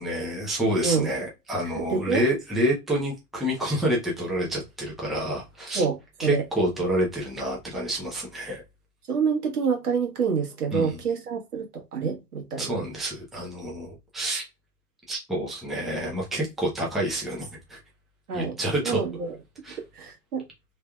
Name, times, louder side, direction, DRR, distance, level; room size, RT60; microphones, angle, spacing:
voice 1, 0.0-5.8 6.2-8.6 10.7-11.0 12.6-14.5 15.1-17.8 18.3-19.0 19.6-19.8, right 1 dB, ahead, 0.8 m, -28 dB
voice 2, 1.8-2.2 5.7-6.4 9.1-12.9 18.3-18.5 18.8-19.4 19.9-20.4, right 6 dB, 70° right, 1.5 m, -27 dB
3.4 x 3.2 x 2.2 m
figure-of-eight pair, 105°, 47 cm